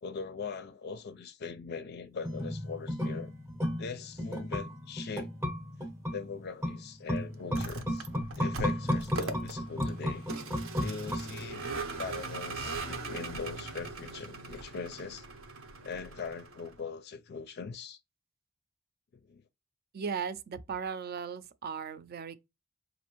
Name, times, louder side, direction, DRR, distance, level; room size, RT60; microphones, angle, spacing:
voice 1, 0.0-3.3 3.8-5.3 6.1-8.1 8.4-10.2 10.8-11.7 12.0-15.2 15.8-18.0 19.3-19.4, left 5 dB, 50° left, 0.4 m, -41 dB
sound 1, 2.2-11.8 12.1-12.2, equal, 10° right, 0.7 m, -34 dB
Vehicle, 7.4-16.8, right 3 dB, 75° right, 0.7 m, -40 dB
voice 2, 19.9-22.4, right 6 dB, 45° right, 0.4 m, -37 dB
5.1 x 2.6 x 2.9 m
head